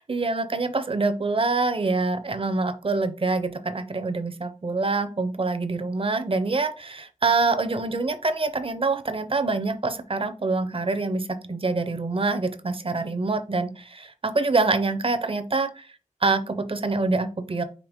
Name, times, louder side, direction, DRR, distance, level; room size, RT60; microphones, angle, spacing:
voice 1, 0.1-15.9 16.2-17.6, right 3 dB, 40° right, 9 dB, 0.6 m, -25 dB
5.1 x 2.8 x 3.5 m, 0.35 s
wide cardioid pair, 85°, 14 cm